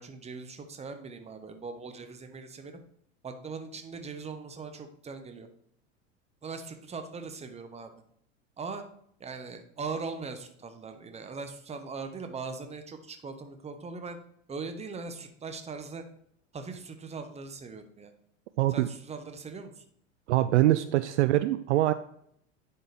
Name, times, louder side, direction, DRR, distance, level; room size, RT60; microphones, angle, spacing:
voice 1, 0.0-2.8 3.2-5.5 6.4-7.9 8.6-8.8 9.2-14.2 14.5-16.0 16.5-18.1 18.7-19.8, right 4 dB, 15° right, 7 dB, 1.0 m, -40 dB
voice 2, 18.6-18.9 20.3-21.9, right 15 dB, 65° right, 12 dB, 0.5 m, -23 dB
10.0 x 4.5 x 3.4 m, 0.68 s
hypercardioid pair, 85°, 38 cm